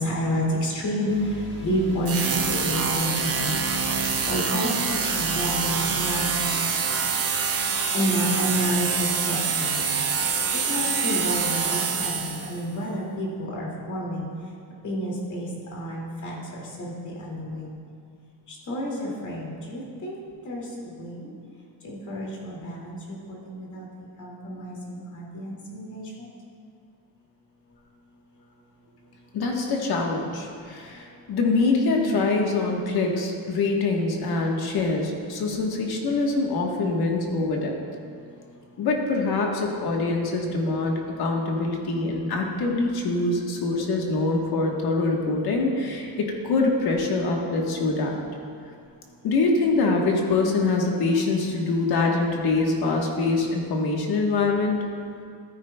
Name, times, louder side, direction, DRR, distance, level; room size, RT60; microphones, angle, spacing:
voice 1, 0.0-3.7 3.9-6.4 7.6-9.8 10.7-14.3 14.8-17.7 18.5-21.3 21.8-23.9 24.2-26.3, equal, 40° left, -4 dB, 2.3 m, -30 dB
sound 1, 1.1-6.4, left 1 dB, 25° left, 1.2 m, -41 dB
sound 2, 2.0-12.6, right 5 dB, 35° right, 0.8 m, -26 dB
voice 2, 29.3-37.7 38.8-48.1 49.2-54.9, left 3 dB, 55° left, 0 dB, 1.3 m, -24 dB
13.5 x 9.7 x 2.2 m, 2.3 s
cardioid pair, 160°, 45 cm